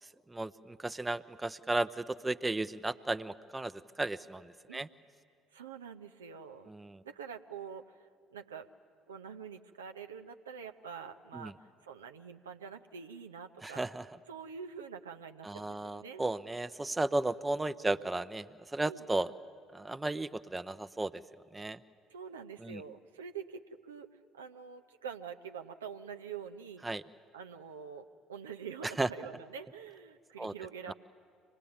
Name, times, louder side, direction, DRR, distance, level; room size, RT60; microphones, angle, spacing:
voice 1, 0.3-4.9 6.7-7.0 11.3-11.5 13.6-14.0 15.4-18.5 18.7-19.3 19.7-21.2 21.5-21.8 22.6-22.8 26.8-27.0 28.8-29.1 30.4-30.5 30.9-31.0, right 2 dB, 15° right, 12 dB, 0.6 m, -34 dB
voice 2, 5.5-6.7 7.0-8.7 9.1-13.8 14.3-16.2 18.8-19.1 22.1-26.8 27.3-30.9, right 7 dB, 85° right, 6 dB, 0.6 m, -46 dB
25.0 x 19.0 x 8.7 m, 2.2 s
hypercardioid pair, 55°, 0 cm